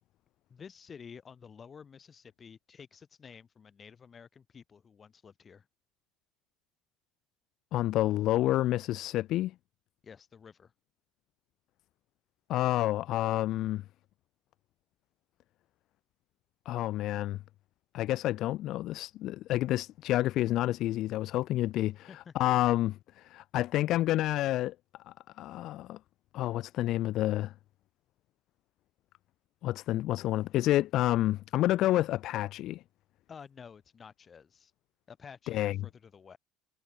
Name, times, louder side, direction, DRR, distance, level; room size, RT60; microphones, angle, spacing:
voice 1, 0.5-5.7 10.0-10.7 22.1-22.3 33.3-34.7 35.1-36.4, left 6 dB, 20° left, 4.8 m, -51 dB
voice 2, 7.7-9.5 12.5-13.8 16.7-17.4 17.9-24.7 25.1-26.0 26.3-27.5 29.6-32.8 35.5-35.8, left 15 dB, 40° left, 0.3 m, -29 dB
cardioid pair, 180°, 0 cm